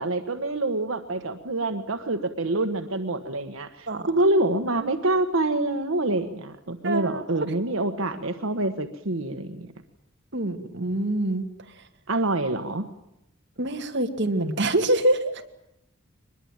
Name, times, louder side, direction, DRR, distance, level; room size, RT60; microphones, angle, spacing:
voice 1, 0.0-9.7 12.1-12.9, right 2 dB, 90° right, 8 dB, 1.4 m, -26 dB
voice 2, 6.8-7.4 10.3-11.5 13.6-15.3, right 1 dB, 60° right, 4 dB, 2.2 m, -25 dB
23.5 x 21.0 x 9.0 m, 0.83 s
head